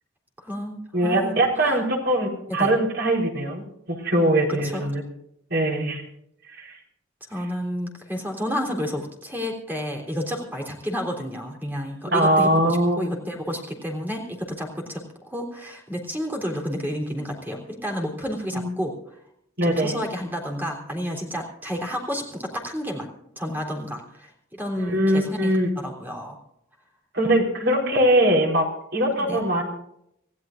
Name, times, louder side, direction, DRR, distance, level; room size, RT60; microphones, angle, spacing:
voice 1, 0.4-1.8 2.5-2.7 4.6-4.8 7.3-19.2 19.6-23.1 23.4-26.4 29.2-29.4, equal, 10° right, 0 dB, 3.6 m, -31 dB
voice 2, 0.9-5.0 5.5-6.0 6.6-6.7 12.1-13.0 18.5-18.7 19.6-20.0 24.8-25.7 27.1-28.7 28.9-29.6, right 1 dB, 55° right, 0 dB, 4.3 m, -21 dB
26.5 x 15.5 x 2.6 m, 0.76 s
head